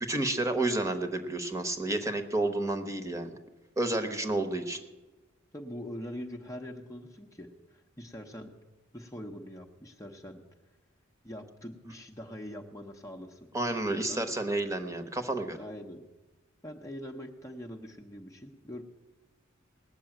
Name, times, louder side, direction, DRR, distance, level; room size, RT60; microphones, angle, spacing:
voice 1, 0.0-3.4 3.8-4.8 13.5-15.6, right 2 dB, 15° right, 8 dB, 1.1 m, -30 dB
voice 2, 5.5-8.5 8.9-10.4 11.2-14.3 15.6-16.0 16.6-18.8, equal, 15° left, 2 dB, 0.8 m, -43 dB
18.5 x 6.8 x 8.9 m, 1.2 s
head